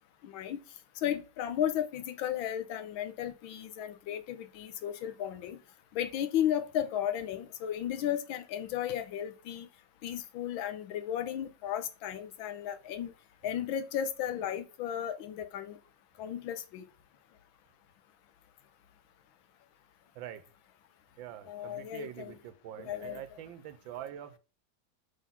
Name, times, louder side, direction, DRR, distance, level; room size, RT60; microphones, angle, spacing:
voice 1, 0.2-0.6 1.0-5.6 5.9-9.7 10.0-13.1 13.4-15.8 16.2-16.8 21.4-22.4 22.8-23.4, left 10 dB, 80° left, 1.5 m, -34 dB
voice 2, 20.1-20.5 21.2-24.4, right 11 dB, 80° right, 1.4 m, -45 dB
6.0 x 3.9 x 5.6 m
omnidirectional pair, 2.1 m